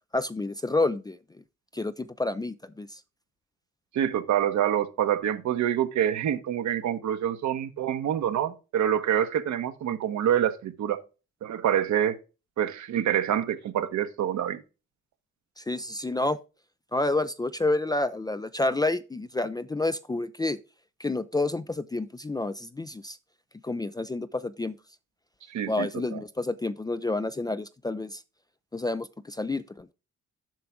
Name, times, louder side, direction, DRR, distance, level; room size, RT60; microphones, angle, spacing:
voice 1, 0.1-1.2 1.7-3.0 15.6-16.4 16.9-20.6 21.0-23.2 23.6-24.8 25.7-28.2 28.7-29.9, left 2 dB, 15° left, 0.4 m, -29 dB
voice 2, 3.9-11.0 11.4-12.2 12.6-14.6 25.5-26.2, right 10 dB, 70° right, 1.0 m, -26 dB
7.7 x 5.8 x 3.6 m
cardioid pair, 90°, 30 cm